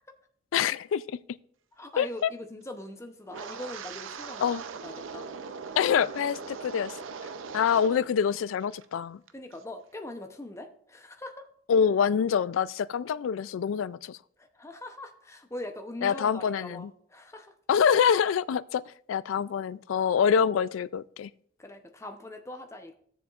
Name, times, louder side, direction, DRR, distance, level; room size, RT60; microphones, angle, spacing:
voice 1, 0.5-1.0 2.0-2.3 4.4-4.6 5.8-6.9 7.5-9.2 11.7-14.2 16.0-16.9 17.7-18.8 19.1-21.3, left 7 dB, 85° left, 0.3 m, -25 dB
voice 2, 1.7-5.3 7.5-7.7 9.3-11.5 14.4-17.5 21.6-22.9, left 1 dB, 15° left, 0.7 m, -42 dB
Wind, 3.3-8.1 8.4-8.9 9.3-9.6, right 5 dB, 85° right, 0.5 m, -40 dB
15.5 x 7.0 x 2.4 m
head